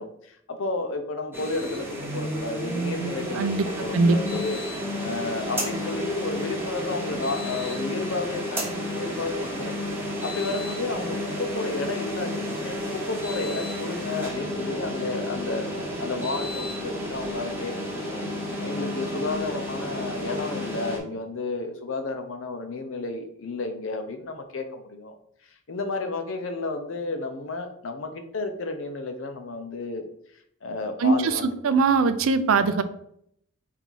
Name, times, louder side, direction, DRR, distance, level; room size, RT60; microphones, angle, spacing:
voice 1, 0.0-4.6 5.0-9.7 10.2-15.7 16.0-18.3 18.6-25.1 25.5-30.0 30.6-31.8, left 3 dB, 70° left, 6 dB, 0.7 m, -32 dB
sound 1, 1.3-21.0, equal, 10° right, 0.9 m, -31 dB
voice 2, 3.3-3.7 3.9-4.2 31.0-32.8, right 4 dB, 85° right, 11 dB, 0.4 m, -21 dB
4.0 x 2.8 x 4.6 m, 0.71 s
head